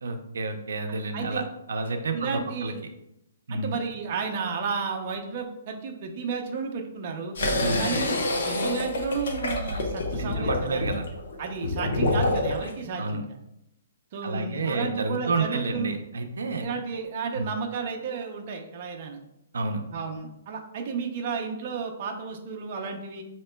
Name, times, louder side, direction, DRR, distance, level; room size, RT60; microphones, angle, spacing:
voice 1, 0.0-1.4 1.7-2.7 3.5-3.8 7.6-7.8 10.2-11.1 13.0-13.2 14.2-16.7 17.3-17.5 19.5-19.8, right 3 dB, 85° right, 6 dB, 0.5 m, -30 dB
voice 2, 1.1-1.4 2.1-2.8 3.5-7.4 7.8-11.0 11.4-13.2 14.1-15.9 16.6-19.2 19.9-23.2, right 5 dB, 35° right, 2 dB, 0.5 m, -32 dB
sound 1, 7.4-12.7, left 2 dB, 65° left, 0.8 m, -27 dB
5.5 x 2.8 x 2.2 m, 0.83 s
hypercardioid pair, 165°, 0 cm